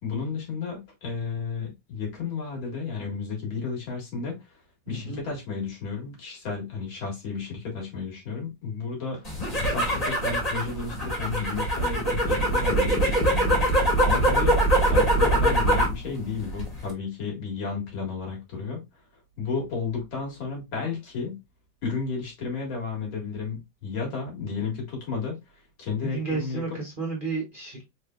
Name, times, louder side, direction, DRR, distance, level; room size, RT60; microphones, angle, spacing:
voice 1, 0.0-4.5 4.9-9.3 9.6-13.7 14.0-14.6 14.8-18.8 19.4-21.4 21.8-25.4 25.8-26.6, left 5 dB, 80° left, 2.5 m, -32 dB
voice 2, 4.9-5.2 26.0-27.8, right 4 dB, 35° right, 0.9 m, -32 dB
sound 1, 9.3-16.0 16.4-16.9, right 1 dB, 20° left, 1.5 m, -23 dB
4.3 x 3.4 x 2.3 m
omnidirectional pair, 2.1 m